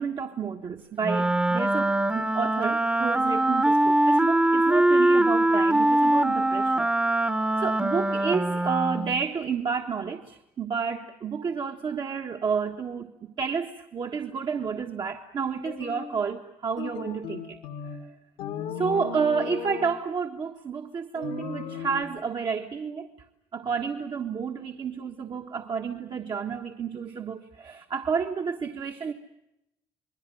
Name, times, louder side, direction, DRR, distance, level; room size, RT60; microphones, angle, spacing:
voice 1, 0.0-6.9 7.6-17.6 17.8-18.1 18.7-23.1 23.5-29.1, right 6 dB, 50° right, 2 dB, 1.6 m, -30 dB
Wind instrument woodwind instrument, 1.0-9.3, right 1 dB, 10° right, 1.1 m, -22 dB
sound 1, 15.7-16.2 16.8-18.1 18.4-19.9 21.2-22.1, left 6 dB, 90° left, 2.4 m, -36 dB
27.5 x 21.0 x 7.8 m, 0.86 s
supercardioid pair, 65°, 10 cm